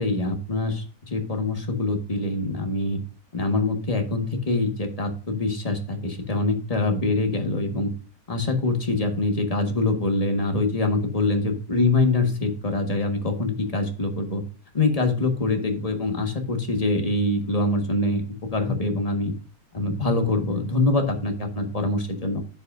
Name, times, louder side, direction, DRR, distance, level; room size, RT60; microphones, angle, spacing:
voice 1, 0.0-3.0 3.3-7.9 8.3-14.4 14.7-18.2 18.5-19.3 19.7-22.4, left 2 dB, 25° left, 4 dB, 1.6 m, -24 dB
9.7 x 8.4 x 2.7 m, 0.39 s
omnidirectional pair, 1.7 m